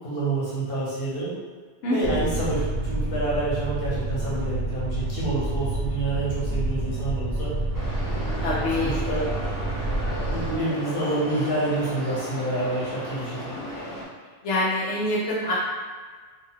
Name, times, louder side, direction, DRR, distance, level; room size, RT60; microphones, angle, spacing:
voice 1, 0.0-1.3 1.9-7.5 8.1-9.2 10.3-13.6, right 2 dB, 55° left, -8 dB, 1.2 m, -28 dB
voice 2, 1.8-2.3 8.4-9.0 13.3-13.8 14.4-15.5, left 1 dB, 80° left, -7 dB, 0.9 m, -26 dB
sound 1, 2.0-10.6, right 2 dB, 50° right, 0.7 m, -28 dB
sound 2, 7.7-14.0, left 1 dB, 35° left, 0.3 m, -35 dB
2.6 x 2.2 x 3.1 m, 1.5 s
omnidirectional pair, 1.2 m